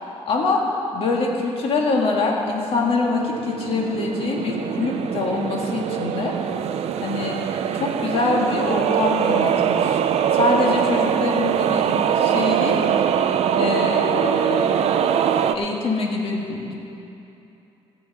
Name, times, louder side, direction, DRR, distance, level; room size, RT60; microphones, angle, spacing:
voice 1, 0.3-0.6 0.9-6.3 7.0-7.4 7.7-10.0 10.3-12.8 13.5-14.7 15.5-16.7, left 3 dB, 60° left, -1 dB, 1.8 m, -24 dB
sound 1, 3.1-15.6, right 8 dB, 70° right, 0.5 m, -22 dB
15.0 x 5.1 x 8.5 m, 2.9 s
cardioid pair, 155°, 11 cm